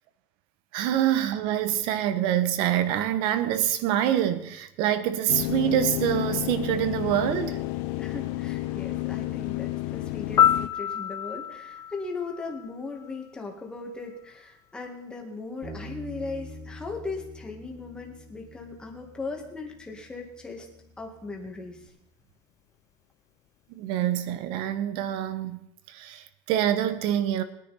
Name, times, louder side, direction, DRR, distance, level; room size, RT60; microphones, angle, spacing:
voice 1, 0.7-7.6 23.7-27.4, right 11 dB, 60° right, 1.1 m, -26 dB
sound 1, 5.3-10.7, left 18 dB, 75° left, 0.7 m, -31 dB
voice 2, 8.0-20.7 21.0-21.9, left 3 dB, 10° left, 1.9 m, -38 dB
Piano, 10.4-13.3 21.4-21.6, left 10 dB, 35° left, 0.5 m, -27 dB
Bass guitar, 15.6-21.9, equal, 15° right, 2.6 m, -46 dB
20.5 x 9.9 x 4.2 m
cardioid pair, 170°, 10 cm